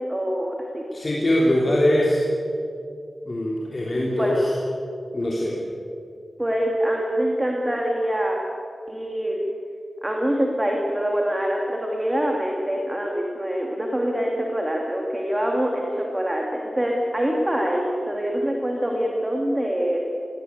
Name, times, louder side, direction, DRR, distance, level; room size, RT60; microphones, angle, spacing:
voice 1, 0.0-0.8 4.2-4.5 6.4-8.4 8.9-9.4 10.0-20.0, equal, 15° right, 0 dB, 2.7 m, -25 dB
voice 2, 0.9-2.2 3.2-4.5 5.1-5.6, left 1 dB, 35° left, -3 dB, 3.3 m, -22 dB
21.0 x 18.5 x 8.7 m, 2.5 s
wide cardioid pair, 110°, 0 cm